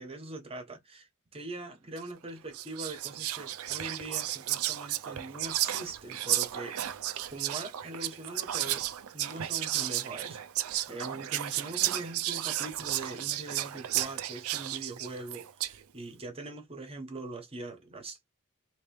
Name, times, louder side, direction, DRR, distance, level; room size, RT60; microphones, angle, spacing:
voice 1, 0.0-6.8 7.3-8.9 9.1-10.4 10.9-18.3, right 2 dB, 25° right, 1.1 m, -42 dB
Whispering, 2.0-2.2 2.5-15.8, right 13 dB, 75° right, 0.4 m, -33 dB
3.2 x 3.1 x 3.1 m
head